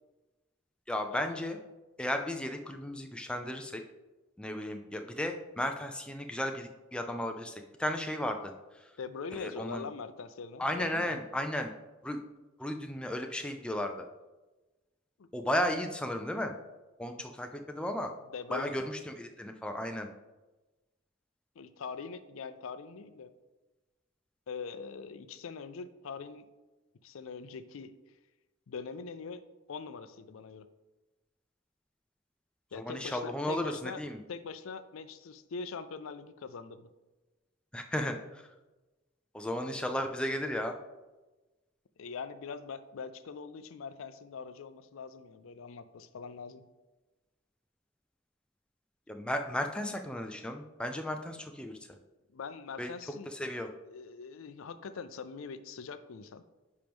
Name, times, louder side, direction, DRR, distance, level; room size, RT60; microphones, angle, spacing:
voice 1, 0.9-1.6 2.0-3.8 4.4-8.5 9.3-9.9 10.6-11.7 12.0-12.2 12.6-14.1 15.3-16.5 17.0-18.1 18.5-20.1 32.7-34.2 37.7-38.5 39.3-40.8 49.1-51.8 52.8-52.9 53.3-53.7, left 1 dB, 5° left, 4 dB, 0.4 m, -34 dB
voice 2, 9.0-11.2 15.2-15.3 18.3-18.8 21.6-23.3 24.5-26.5 27.0-27.9 28.7-29.4 29.7-30.7 32.7-34.0 34.3-36.9 42.0-46.6 52.3-53.3 53.9-56.4, left 5 dB, 75° left, 12 dB, 0.5 m, -42 dB
10.0 x 4.5 x 3.5 m, 1.1 s
head